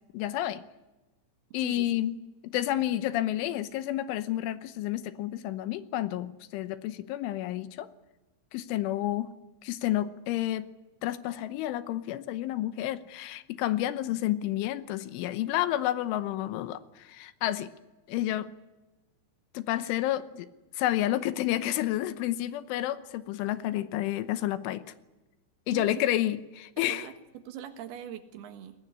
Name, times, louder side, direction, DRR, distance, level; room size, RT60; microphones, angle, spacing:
voice 1, 0.1-0.6 1.5-2.1 2.4-7.9 8.5-9.3 9.6-10.7 11.0-17.7 18.1-18.5 19.5-20.5 20.7-24.8 25.7-27.1, left 14 dB, 80° left, 12 dB, 3.3 m, -30 dB
voice 2, 25.7-26.3 26.9-28.8, right 9 dB, 65° right, 8 dB, 2.9 m, -42 dB
21.5 x 19.5 x 9.8 m, 1.1 s
omnidirectional pair, 5.8 m